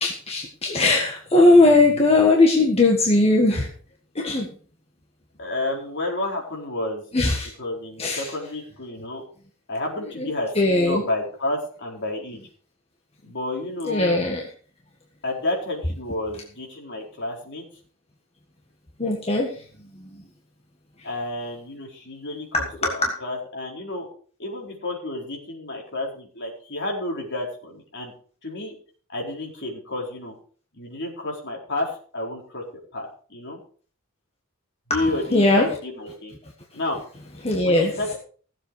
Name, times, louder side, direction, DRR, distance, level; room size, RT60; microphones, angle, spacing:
voice 1, 0.0-3.7 4.2-4.5 7.1-7.5 8.0-8.3 10.2-10.3 10.6-11.0 13.9-14.4 19.0-19.6 20.0-20.1 22.5-23.2 34.9-35.8 37.4-38.0, left 2 dB, 30° left, 0 dB, 1.6 m, -19 dB
voice 2, 5.4-7.0 7.6-9.2 9.7-12.4 13.2-14.2 15.2-17.6 21.0-24.1 24.4-28.1 28.4-28.8 29.1-30.3 30.7-32.6 32.9-33.6 34.9-36.3 36.7-37.0 37.3-38.2, left 2 dB, 55° left, 0 dB, 4.4 m, -30 dB
16.5 x 7.6 x 4.9 m, 0.42 s
head